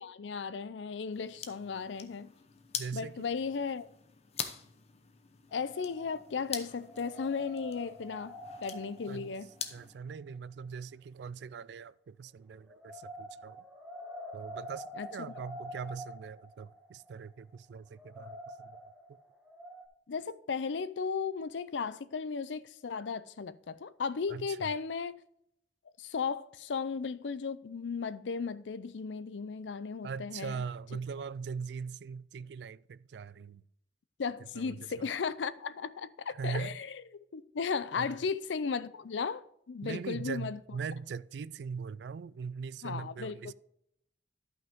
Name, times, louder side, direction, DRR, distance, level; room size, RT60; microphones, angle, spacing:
voice 1, 0.0-2.3 2.9-3.9 5.5-9.5 15.0-15.3 20.1-25.1 26.0-30.6 34.2-40.6 42.8-43.5, left 5 dB, 85° left, 0.5 m, -36 dB
sound 1, 1.1-9.9, left 7 dB, 35° left, 0.7 m, -44 dB
voice 2, 2.7-3.3 9.1-9.3 9.7-13.6 14.3-18.9 24.3-24.7 30.0-33.6 34.5-35.1 36.3-36.8 38.0-38.2 39.8-43.5, right 5 dB, 70° right, 0.3 m, -41 dB
sound 2, 5.5-6.5 6.8-9.9 12.6-19.9, equal, 5° right, 1.2 m, -47 dB
12.0 x 5.6 x 3.6 m
head